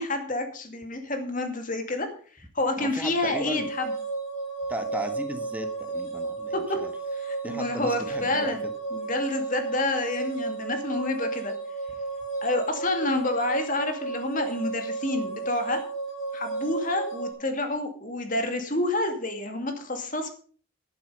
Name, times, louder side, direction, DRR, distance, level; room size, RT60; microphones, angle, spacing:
voice 1, 0.0-2.1 2.4-3.9 6.5-6.8 7.1-8.6 8.9-11.5 12.4-15.8 16.3-20.3, left 2 dB, 40° left, 6 dB, 2.3 m, -29 dB
voice 2, 2.8-3.7 4.7-6.9 7.4-8.6, right 1 dB, 10° right, 6 dB, 1.5 m, -35 dB
sound 1, 3.3-17.3, right 3 dB, 85° left, 4.5 m, -33 dB
11.5 x 11.0 x 5.4 m, 0.43 s
head